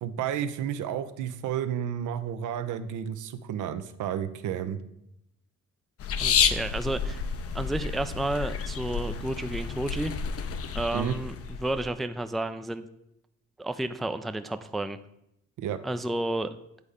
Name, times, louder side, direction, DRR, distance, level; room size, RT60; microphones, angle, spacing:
voice 1, 0.0-4.8 10.9-11.2 15.6-15.8, right 9 dB, 80° right, 11 dB, 0.7 m, -31 dB
sound 1, 6.0-11.9, left 6 dB, 50° left, 0.6 m, -30 dB
voice 2, 6.2-7.2 7.5-10.1 10.7-12.8 13.6-15.0 15.8-16.6, right 1 dB, ahead, 10 dB, 0.3 m, -31 dB
8.4 x 4.2 x 4.9 m, 0.81 s
cardioid pair, 90°, 30 cm